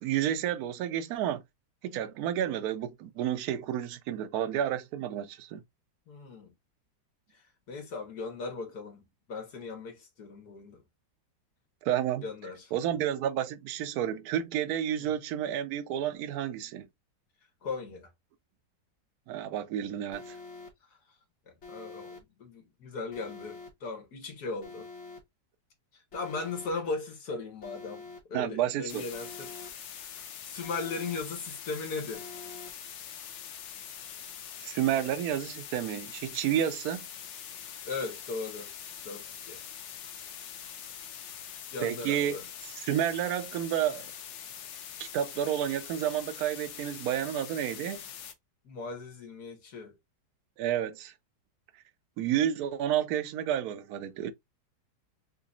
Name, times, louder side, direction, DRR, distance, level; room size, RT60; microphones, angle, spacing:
voice 1, 0.0-1.4 1.8-5.6 11.8-12.2 12.7-16.9 19.3-20.4 28.3-29.0 34.6-37.0 41.8-42.4 42.7-44.1 45.0-48.0 50.6-51.1 52.2-54.3, right 10 dB, 70° right, 0.9 m, -30 dB
voice 2, 6.1-6.5 7.3-7.4 7.7-10.8 12.2-12.7 15.0-15.2 17.6-18.1 21.5-24.9 25.9-32.3 37.8-38.7 39.0-39.6 41.7-42.4 48.6-49.9, left 4 dB, 65° left, 1.8 m, -38 dB
Alarm, 20.1-20.7 21.6-22.2 23.1-23.7 24.6-25.2 26.1-26.7 27.6-28.2 29.1-29.7 30.6-31.2 32.1-32.7, left 3 dB, 45° left, 1.0 m, -46 dB
sound 1, 28.9-48.3, left 9 dB, 90° left, 1.4 m, -44 dB
3.9 x 2.9 x 2.5 m
omnidirectional pair, 1.9 m